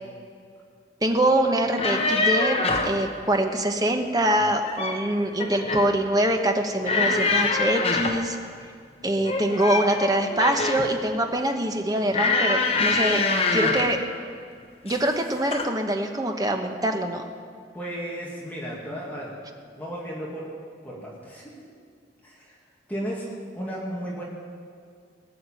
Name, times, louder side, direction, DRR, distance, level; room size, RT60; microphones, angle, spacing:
voice 1, 1.0-8.4 9.0-13.2 13.5-14.0 14.8-17.2, right 1 dB, 20° right, 4 dB, 1.0 m, -24 dB
sound 1, 1.6-3.0 4.4-5.0 5.4-5.9 6.8-8.3 9.2-10.9 12.1-14.0 14.9-15.2 15.5-15.7, left 3 dB, 35° left, 1.1 m, -24 dB
voice 2, 17.7-19.3 19.8-20.5 20.8-21.5 22.2-22.6 22.9-23.3 23.6-24.2, equal, 10° left, -5 dB, 2.2 m, -34 dB
19.0 x 6.7 x 9.0 m, 2.2 s
head